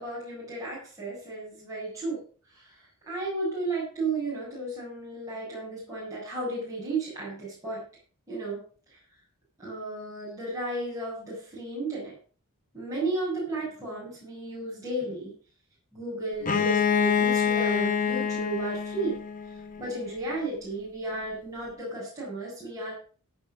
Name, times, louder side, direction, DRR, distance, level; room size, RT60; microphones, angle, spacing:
voice 1, 0.0-2.2 2.5-7.9 8.3-8.6 8.9-9.0 9.6-12.1 12.7-15.3 15.9-19.2 19.8-23.0, right 2 dB, 15° right, -7 dB, 7.7 m, -34 dB
Bowed string instrument, 16.4-20.1, left 7 dB, 40° left, 1.5 m, -26 dB
17.5 x 6.1 x 6.5 m, 0.41 s
head